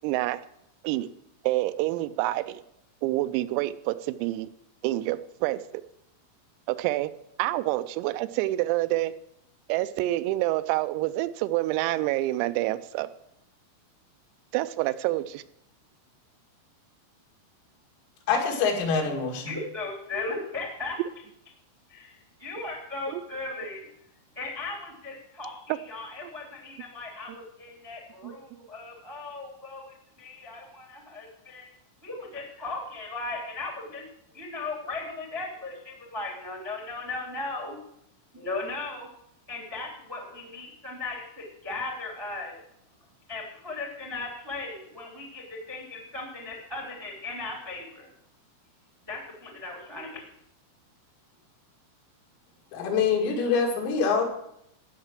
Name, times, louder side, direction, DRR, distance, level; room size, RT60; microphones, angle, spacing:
voice 1, 0.0-0.4 0.8-1.1 1.4-2.6 3.0-4.5 4.8-5.8 6.7-7.1 7.4-9.1 9.7-13.1 14.5-15.4 23.1-23.2 25.7-25.8 26.2-26.3 28.2-28.3, right 17 dB, 90° right, 13 dB, 3.3 m, -27 dB
voice 2, 18.3-19.6 52.7-54.2, left 5 dB, 80° left, 1 dB, 5.0 m, -25 dB
voice 3, 19.4-21.0 21.9-23.9 24.3-31.7 32.0-34.0 34.3-37.8 38.3-39.1 39.5-42.6 43.3-48.1 49.1-50.2, left 3 dB, 25° right, 0 dB, 0.5 m, -37 dB
15.5 x 5.9 x 7.6 m, 0.77 s
omnidirectional pair, 5.9 m